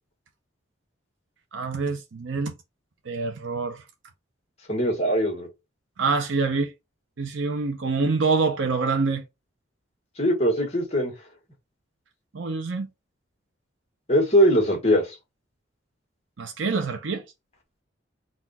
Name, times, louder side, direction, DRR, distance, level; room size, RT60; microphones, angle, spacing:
voice 1, 1.5-2.5 3.1-3.8 6.0-6.7 7.2-9.2 12.3-12.9 16.4-17.2, right 4 dB, 85° right, 0.7 m, -26 dB
voice 2, 4.7-5.5 10.2-11.1 14.1-15.2, equal, 35° left, 1.6 m, -21 dB
4.0 x 2.5 x 4.2 m
head